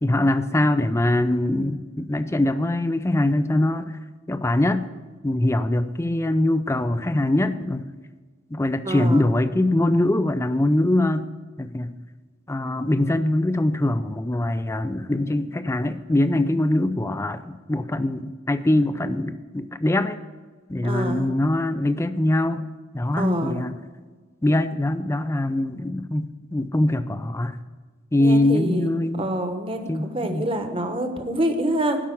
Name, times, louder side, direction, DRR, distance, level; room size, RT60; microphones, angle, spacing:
voice 1, 0.0-4.0 4.3-4.8 5.2-7.9 8.5-11.3 11.6-12.0 12.5-20.2 20.7-22.7 22.9-23.8 24.4-27.6 28.1-29.4 29.9-30.5, left 1 dB, 15° left, 12 dB, 0.4 m, -23 dB
voice 2, 8.8-9.3 20.8-21.3 23.1-23.6 28.2-28.9 29.2-32.0, right 1 dB, 25° right, 6 dB, 1.1 m, -26 dB
12.0 x 5.6 x 8.6 m, 1.4 s
head